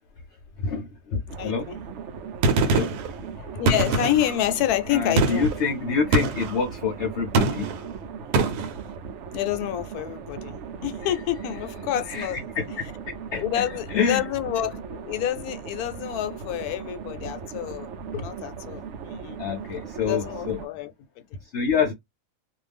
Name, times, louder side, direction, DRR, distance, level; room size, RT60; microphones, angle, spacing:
voice 1, 0.6-1.6 2.6-2.9 4.9-7.7 12.1-12.6 13.3-14.2 19.4-20.6 21.5-21.9, left 5 dB, 60° left, 0.8 m, -27 dB
sound 1, 1.3-20.7, right 6 dB, 65° right, 0.8 m, -38 dB
voice 2, 1.4-1.8 3.4-5.5 9.3-12.4 13.4-19.4 20.0-21.4, left 11 dB, 80° left, 1.1 m, -28 dB
Gunshot gunfire, 2.4-3.1 3.7-4.4 5.2-5.6 6.1-6.6 7.3-7.8 8.3-8.7, right 3 dB, 85° right, 1.1 m, -23 dB
2.6 x 2.3 x 3.3 m
omnidirectional pair, 1.6 m